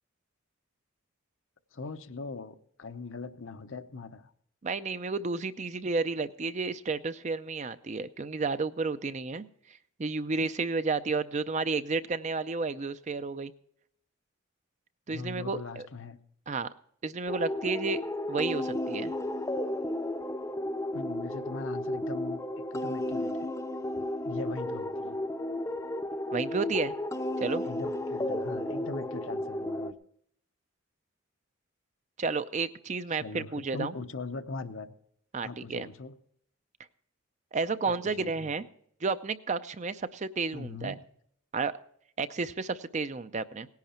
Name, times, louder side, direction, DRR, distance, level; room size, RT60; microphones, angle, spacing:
voice 1, 1.7-4.3 15.1-16.2 20.9-23.5 24.2-25.2 27.6-29.9 33.1-34.9 35.4-36.2 37.9-38.5 40.5-41.0, left 3 dB, 70° left, 9 dB, 0.8 m, -40 dB
voice 2, 4.6-9.4 10.0-13.5 15.1-15.9 16.5-16.7 17.0-18.0 18.3-19.1 26.3-26.9 27.4-27.6 32.2-33.9 35.3-35.9 37.5-38.6 39.0-41.0 41.5-41.7 42.2-43.7, right 4 dB, 35° right, 12 dB, 0.5 m, -31 dB
sound 1, 17.3-29.9, left 1 dB, 15° left, 0.6 m, -33 dB
17.5 x 10.5 x 4.3 m, 0.68 s
head